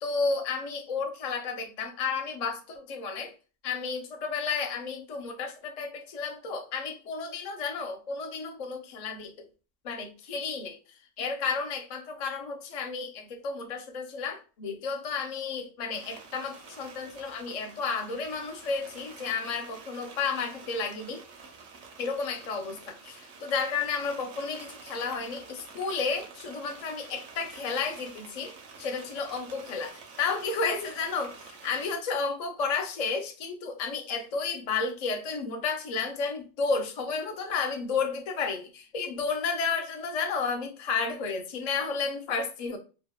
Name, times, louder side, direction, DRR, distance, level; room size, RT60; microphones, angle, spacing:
voice 1, 0.0-3.3 3.6-9.3 9.8-10.8 11.2-21.2 22.0-28.5 28.8-42.8, left 5 dB, 70° left, 0.3 m, -32 dB
sound 1, 15.9-32.0, right 5 dB, 85° right, 0.9 m, -48 dB
2.7 x 2.1 x 2.2 m
omnidirectional pair, 1.2 m